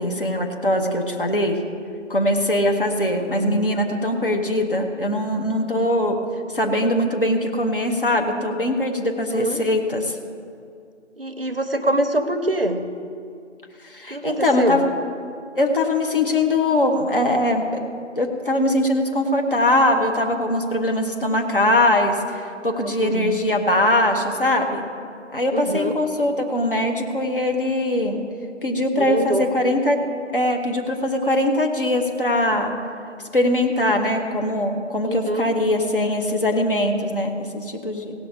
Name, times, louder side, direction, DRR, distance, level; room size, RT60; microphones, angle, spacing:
voice 1, 0.0-1.6 2.1-6.2 6.5-10.2 13.8-14.9 15.6-17.8 18.2-24.9 25.3-28.2 28.6-30.0 30.3-32.7 33.3-38.1, left 1 dB, 45° left, 3 dB, 1.2 m, -21 dB
voice 2, 9.3-9.6 11.2-13.0 14.1-14.8 22.8-23.4 25.5-26.0 29.0-29.5 35.1-35.5, right 1 dB, 50° right, 8 dB, 0.7 m, -24 dB
17.0 x 5.9 x 5.2 m, 2.4 s
figure-of-eight pair, 165°, 38 cm